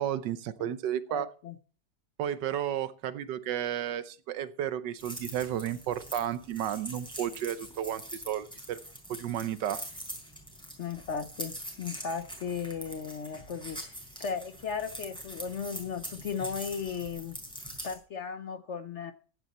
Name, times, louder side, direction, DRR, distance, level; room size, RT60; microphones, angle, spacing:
voice 1, 0.0-1.3 2.2-8.8 9.1-9.8, right 10 dB, 80° right, 14 dB, 1.4 m, -32 dB
voice 2, 1.1-1.6 10.8-13.8 14.2-17.4 17.8-19.1, left 6 dB, 55° left, 10 dB, 0.8 m, -36 dB
sound 1, 5.0-18.0, equal, 5° left, 4.1 m, -44 dB
15.0 x 9.7 x 4.2 m, 0.40 s
omnidirectional pair, 1.8 m